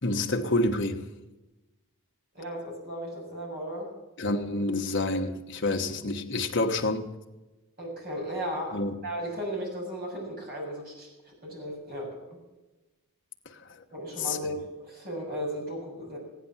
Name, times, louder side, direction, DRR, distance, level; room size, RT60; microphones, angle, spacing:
voice 1, 0.0-1.0 4.2-7.1 8.7-8.9 13.4-13.8 14.2-14.4, left 2 dB, 55° left, 1.4 m, -28 dB
voice 2, 2.3-3.9 7.8-11.1 11.4-12.2 13.9-16.2, equal, 45° right, 6.9 m, -35 dB
15.5 x 10.5 x 7.2 m
head